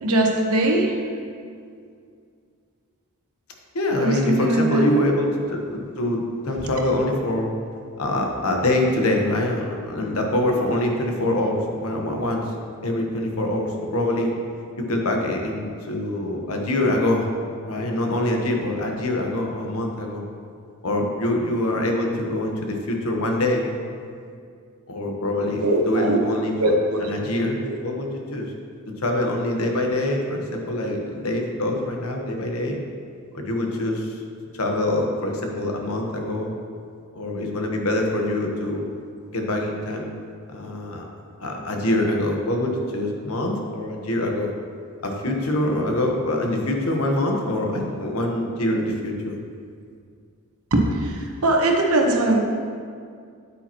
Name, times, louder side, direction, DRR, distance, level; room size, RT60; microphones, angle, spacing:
voice 1, 0.0-1.0 4.0-4.8 25.6-26.2 26.6-27.1 27.6-27.8 50.7-52.4, right 1 dB, 80° right, 1 dB, 1.1 m, -21 dB
voice 2, 3.7-7.5 8.0-12.4 12.8-14.3 14.8-17.3 17.6-20.2 20.8-23.7 24.9-28.5 29.0-32.8 33.3-34.1 34.6-36.6 37.1-38.9 39.3-40.1 40.5-41.1 41.4-44.5 45.0-49.4, left 1 dB, 75° left, 1 dB, 1.1 m, -24 dB
8.9 x 8.5 x 3.0 m, 2.2 s
head